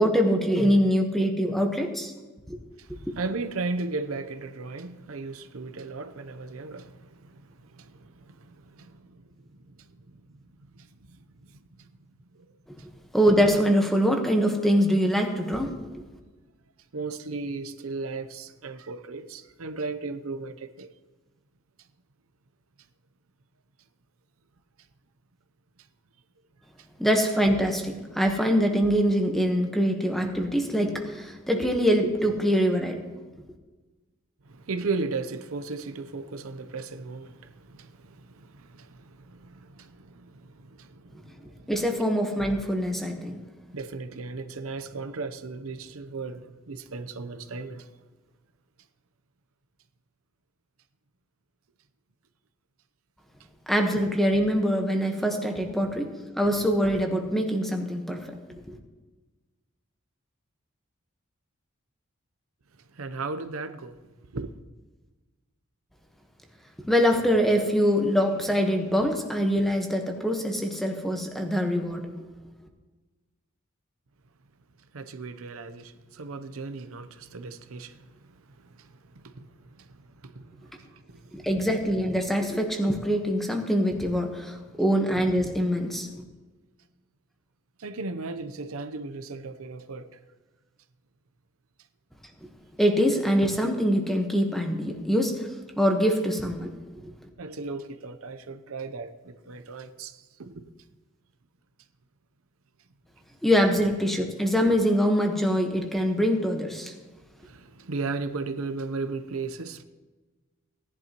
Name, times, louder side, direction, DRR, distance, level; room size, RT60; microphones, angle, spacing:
voice 1, 0.0-2.1 2.5-2.6 13.1-16.0 27.0-33.0 41.7-43.4 53.7-58.3 58.7-58.8 66.8-72.3 81.3-86.1 92.8-95.5 95.8-96.7 97.0-97.1 103.4-106.9, equal, ahead, 1.2 m, -24 dB
voice 2, 2.8-10.4 10.8-11.2 12.3-12.5 16.9-20.9 34.5-41.7 43.7-47.9 62.9-64.5 74.9-78.0 78.7-81.4 87.8-90.1 97.4-100.7 107.4-109.8, right 3 dB, 80° right, 0.7 m, -36 dB
17.5 x 11.0 x 3.0 m
head